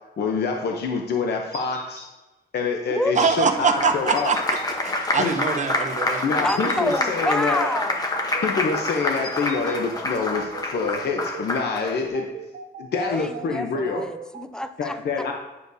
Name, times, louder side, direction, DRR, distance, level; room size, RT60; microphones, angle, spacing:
voice 1, 0.2-2.1 2.5-4.3 5.2-5.3 6.2-7.7 8.4-12.3 12.8-14.0 14.8-15.3, left 5 dB, 65° left, 2 dB, 0.7 m, -26 dB
sound 1, 1.5-2.1 4.1-4.7 6.5-7.0 9.2-9.8, right 1 dB, 20° right, 1.4 m, -40 dB
Applause, 3.2-12.0, left 2 dB, 20° left, 0.9 m, -27 dB
voice 2, 3.2-4.6 4.8-6.7, right 5 dB, 40° right, 7 dB, 0.7 m, -24 dB
sound 2, 4.5-14.4, right 9 dB, 85° right, 0.6 m, -39 dB
voice 3, 6.4-8.0 12.9-15.0, left 1 dB, 5° left, 9 dB, 0.4 m, -28 dB
9.5 x 6.4 x 2.7 m, 1.1 s
wide cardioid pair, 135°, 19 cm